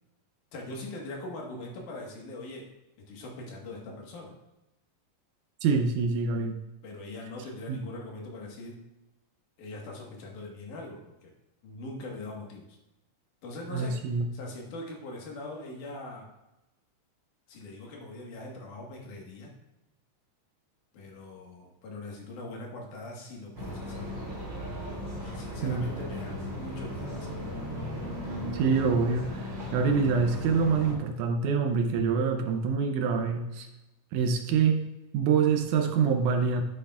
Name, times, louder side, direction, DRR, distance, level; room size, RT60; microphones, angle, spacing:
voice 1, 0.5-2.7 3.1-4.3 6.8-8.8 9.6-11.3 11.6-12.8 13.4-14.0 14.3-16.3 17.5-19.5 20.9-24.1 25.2-27.4, left 2 dB, 70° left, 0 dB, 2.9 m, -41 dB
voice 2, 5.6-6.6 7.7-7.8 13.7-14.3 25.6-25.9 28.5-33.7 34.1-34.9 35.1-36.6, right 5 dB, 75° right, 6 dB, 2.0 m, -26 dB
sound 1, 23.5-30.9, equal, 35° right, 3.5 m, -36 dB
10.0 x 8.2 x 2.3 m, 0.97 s
omnidirectional pair, 3.8 m